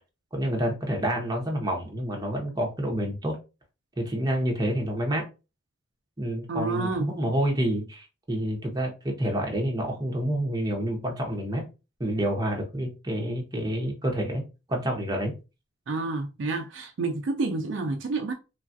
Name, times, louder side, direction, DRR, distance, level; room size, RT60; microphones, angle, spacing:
voice 1, 0.3-3.4 4.0-5.2 6.2-11.6 12.0-14.4 14.7-15.3, right 1 dB, 20° right, 0.7 m, -28 dB
voice 2, 6.5-7.1 15.9-18.3, right 3 dB, 60° right, 0.4 m, -29 dB
3.2 x 2.3 x 2.6 m
head